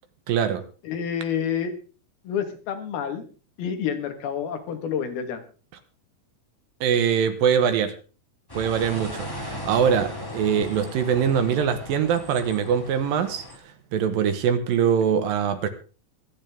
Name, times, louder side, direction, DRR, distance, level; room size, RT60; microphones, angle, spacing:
voice 1, 0.3-0.6 6.8-7.9 8.5-13.4 13.9-15.7, right 7 dB, 70° right, 10 dB, 2.7 m, -23 dB
voice 2, 0.8-1.7 2.3-3.2 3.6-5.4, left 8 dB, 75° left, 7 dB, 3.4 m, -28 dB
sound 1, 8.5-13.6, left 1 dB, 10° left, 1.2 m, -37 dB
25.0 x 8.9 x 3.5 m, 0.37 s
omnidirectional pair, 4.4 m